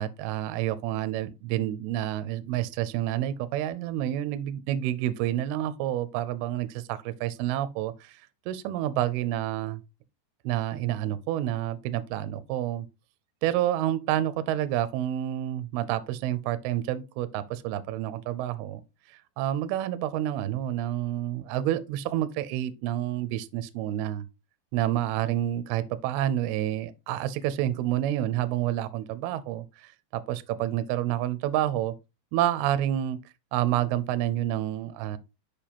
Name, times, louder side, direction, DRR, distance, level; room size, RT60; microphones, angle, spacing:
voice 1, 0.0-9.8 10.4-12.9 13.4-18.8 19.1-24.3 24.7-31.9 32.3-33.2 33.5-35.2, right 12 dB, 80° right, 2.3 m, -29 dB
6.7 x 5.5 x 2.9 m
omnidirectional pair, 5.1 m